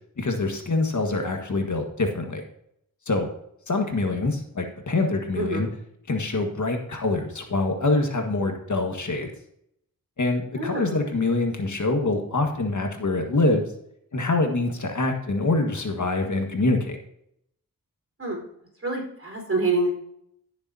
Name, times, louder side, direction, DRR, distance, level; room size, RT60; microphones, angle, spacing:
voice 1, 0.2-2.5 3.1-3.3 3.7-5.7 6.1-9.3 10.2-13.7 14.1-17.0, left 2 dB, 55° left, 4 dB, 1.7 m, -25 dB
voice 2, 5.4-5.7 10.6-11.0 18.2-18.4 18.8-19.9, right 2 dB, 40° right, 0 dB, 4.6 m, -26 dB
16.0 x 7.0 x 2.8 m, 0.73 s
cardioid pair, 60°, 35 cm